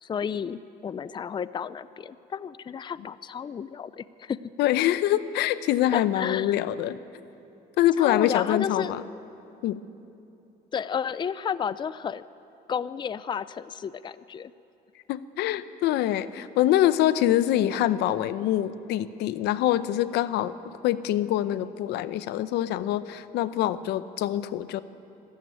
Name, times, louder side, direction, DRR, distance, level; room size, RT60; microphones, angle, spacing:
voice 1, 0.0-4.4 5.9-6.5 8.0-9.0 10.7-12.2 12.7-14.5, left 7 dB, 25° left, 16 dB, 0.5 m, -32 dB
voice 2, 4.6-7.0 7.8-9.0 9.6-9.8 15.1-20.5 20.8-24.8, left 13 dB, 85° left, 14 dB, 0.8 m, -25 dB
24.5 x 13.5 x 9.2 m, 2.8 s
cardioid pair, 110°, 17 cm